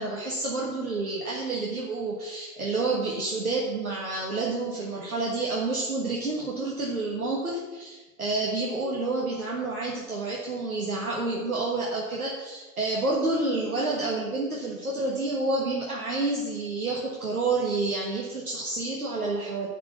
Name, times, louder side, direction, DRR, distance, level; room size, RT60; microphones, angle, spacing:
voice 1, 0.0-19.7, right 3 dB, 85° right, -3 dB, 1.5 m, -29 dB
10.5 x 5.1 x 8.3 m, 1.2 s
figure-of-eight pair, 70°, 42 cm